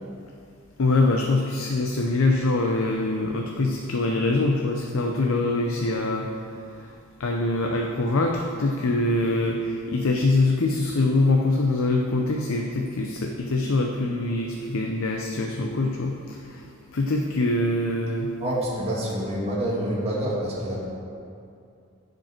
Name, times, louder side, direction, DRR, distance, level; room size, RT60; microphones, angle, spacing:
voice 1, 0.8-6.3 7.2-16.7 16.9-18.3, left 2 dB, 70° left, 1 dB, 0.7 m, -24 dB
voice 2, 18.4-20.8, right 1 dB, 30° right, -6 dB, 2.5 m, -27 dB
15.5 x 5.2 x 4.4 m, 2.5 s
head